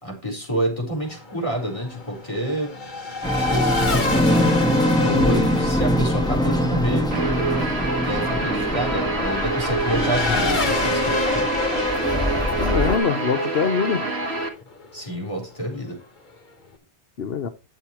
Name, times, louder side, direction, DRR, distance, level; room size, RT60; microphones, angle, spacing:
voice 1, 0.0-2.7 3.5-7.1 8.0-11.5 14.9-16.0, equal, 30° left, 4.2 m, -28 dB
Race car auto racing / Accelerating revving vroom, 1.0-15.1, left 3 dB, 45° left, 1.6 m, -28 dB
sound 1, 3.2-13.0, equal, 5° left, 1.3 m, -23 dB
voice 2, 5.0-5.5 12.6-14.0 17.2-17.5, left 6 dB, 65° left, 1.1 m, -23 dB
Guitar, 7.1-14.5, right 3 dB, 70° right, 2.1 m, -26 dB
10.5 x 6.8 x 4.4 m
omnidirectional pair, 1.1 m